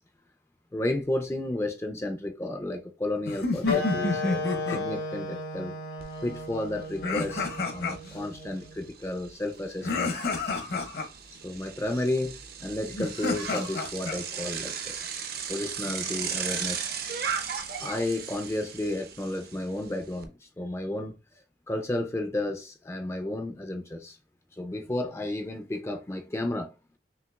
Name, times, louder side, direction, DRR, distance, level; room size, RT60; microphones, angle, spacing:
voice 1, 0.7-5.7 6.2-10.1 11.3-15.0 15.5-16.9 17.8-21.1 21.7-24.2 24.5-26.7, left 1 dB, 15° left, 0.4 m, -32 dB
sound 1, 3.3-4.8 7.0-8.2 9.8-11.1 12.9-14.2, left 3 dB, 60° left, 0.8 m, -29 dB
Wind instrument woodwind instrument, 3.6-8.8, left 3 dB, 85° left, 2.1 m, -34 dB
Bicycle, 6.0-6.1 6.5-20.2, right 7 dB, 55° right, 0.6 m, -37 dB
5.8 x 2.7 x 2.3 m
head